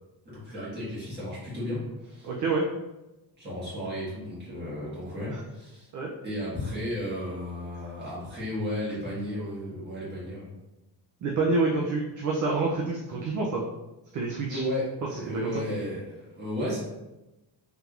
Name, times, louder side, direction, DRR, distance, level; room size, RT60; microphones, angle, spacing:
voice 1, 0.2-2.3 3.4-5.9 6.2-10.5 14.5-16.8, left 1 dB, 25° right, -8 dB, 1.5 m, -34 dB
voice 2, 2.2-2.7 5.9-6.1 11.2-13.6 14.1-14.6 15.1-15.6, right 3 dB, 45° right, -1 dB, 0.4 m, -27 dB
3.3 x 2.9 x 2.4 m, 1.0 s
cardioid pair, 165°, 44 cm